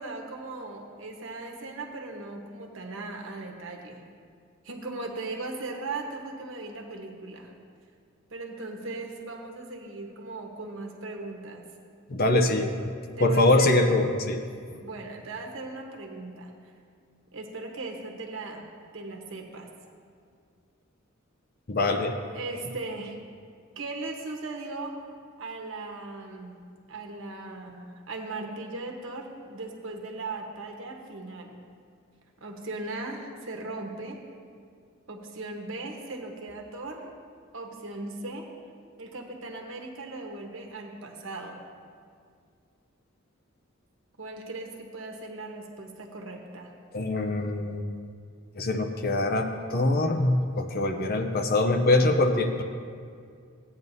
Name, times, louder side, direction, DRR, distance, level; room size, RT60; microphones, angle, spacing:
voice 1, 0.0-4.0 4.6-7.5 8.3-11.7 13.2-13.8 14.8-16.5 17.3-18.6 18.9-19.7 22.3-23.2 23.8-25.0 25.4-26.6 26.9-31.6 32.4-34.2 35.1-37.1 37.5-38.5 39.0-41.6 44.2-46.7, right 2 dB, 65° right, 2 dB, 1.2 m, -38 dB
voice 2, 12.1-12.9 13.2-14.4 21.7-22.2 46.9-47.9 48.6-52.6, left 2 dB, 45° left, 5 dB, 0.6 m, -23 dB
16.0 x 9.1 x 2.7 m, 2.2 s
head